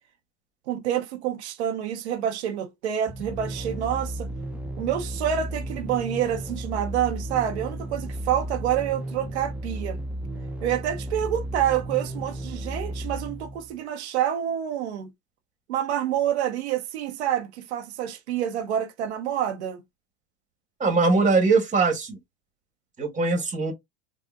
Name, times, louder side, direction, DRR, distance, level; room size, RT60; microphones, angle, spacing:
voice 1, 0.7-4.3 4.8-10.0 10.6-15.1 15.7-19.8, right 10 dB, 85° right, 0.6 m, -27 dB
sound 1, 3.1-13.8, right 1 dB, 5° right, 0.3 m, -34 dB
voice 2, 20.8-22.2 23.0-23.7, right 4 dB, 25° right, 1.2 m, -21 dB
3.6 x 2.1 x 2.3 m
hypercardioid pair, 105°, 32 cm